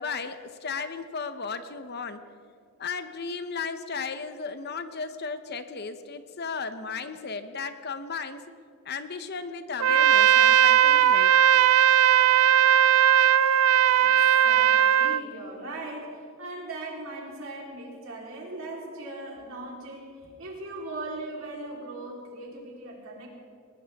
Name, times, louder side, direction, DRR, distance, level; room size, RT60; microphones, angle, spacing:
voice 1, 0.0-2.2 2.8-8.4 8.8-11.4, left 5 dB, 45° left, 10 dB, 0.8 m, -35 dB
Trumpet, 9.8-15.2, right 10 dB, 85° right, 0.4 m, -18 dB
voice 2, 14.4-23.3, right 2 dB, 65° right, -2 dB, 3.8 m, -39 dB
20.0 x 20.0 x 3.6 m, 2.3 s
head